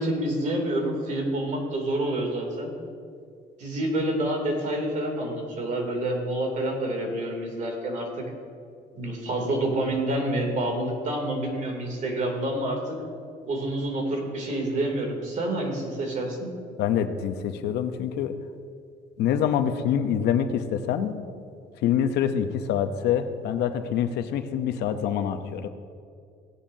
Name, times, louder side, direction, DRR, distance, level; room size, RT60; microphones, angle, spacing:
voice 1, 0.0-2.7 3.6-8.2 8.9-13.0 13.5-16.5, right 1 dB, 45° right, 1 dB, 2.9 m, -28 dB
voice 2, 16.8-18.4 19.2-21.1 21.8-25.7, left 9 dB, 80° left, 8 dB, 0.8 m, -25 dB
17.0 x 10.0 x 2.7 m, 2.3 s
cardioid pair, 110°, 17 cm